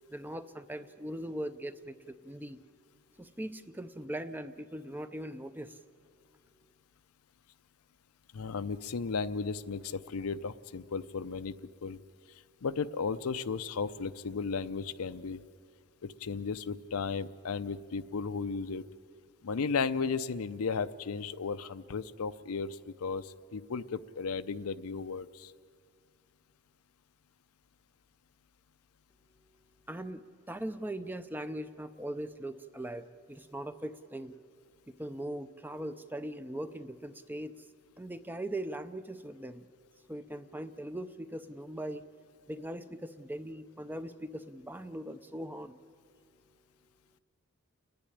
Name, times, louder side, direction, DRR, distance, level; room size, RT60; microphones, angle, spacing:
voice 1, 0.1-2.6 3.2-5.8 29.9-34.4 34.9-39.7 40.1-42.0 42.5-45.8, right 1 dB, 10° right, 11 dB, 0.5 m, -40 dB
voice 2, 8.3-11.6 11.8-12.0 12.6-15.4 16.0-18.9 19.4-25.5, left 5 dB, 75° left, 13 dB, 0.6 m, -35 dB
29.0 x 10.5 x 10.0 m, 2.3 s
head